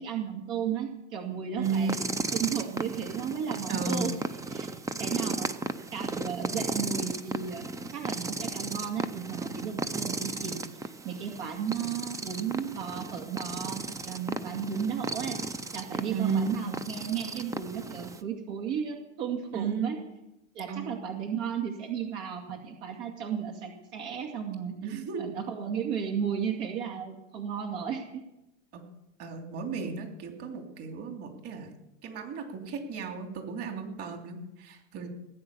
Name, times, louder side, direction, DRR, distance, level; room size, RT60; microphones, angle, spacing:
voice 1, 0.0-2.0 2.3-4.1 4.5-4.7 5.0-5.5 5.9-15.4 15.7-20.0 20.5-24.7 25.2-28.0, right 7 dB, 70° right, 2 dB, 2.4 m, -34 dB
sound 1, 1.6-18.2, right 3 dB, 10° right, 0.5 m, -35 dB
voice 2, 1.6-2.0 3.7-4.1 16.1-16.5 19.5-20.0 20.7-21.0 24.8-25.2 28.7-28.8 29.2-31.7 32.0-35.1, right 5 dB, 40° right, 3 dB, 3.1 m, -33 dB
18.5 x 9.3 x 7.0 m, 0.90 s
supercardioid pair, 135°, 36 cm